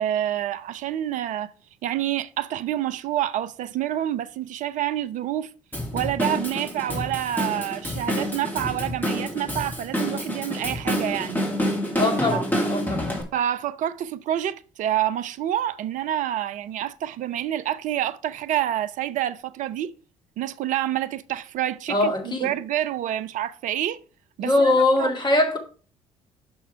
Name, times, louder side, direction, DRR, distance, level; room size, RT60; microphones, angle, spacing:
voice 1, 0.0-1.5 1.8-5.5 5.9-11.4 12.3-12.6 13.3-19.9 20.4-24.0 24.4-25.1, right 12 dB, 50° right, 0.5 m, -28 dB
Drum kit / Drum, 5.7-13.2, equal, 10° left, 2.5 m, -28 dB
voice 2, 12.0-13.1 21.9-22.5 24.4-25.6, left 2 dB, 25° left, 2.0 m, -22 dB
5.9 x 5.3 x 4.5 m
hypercardioid pair, 50°, 16 cm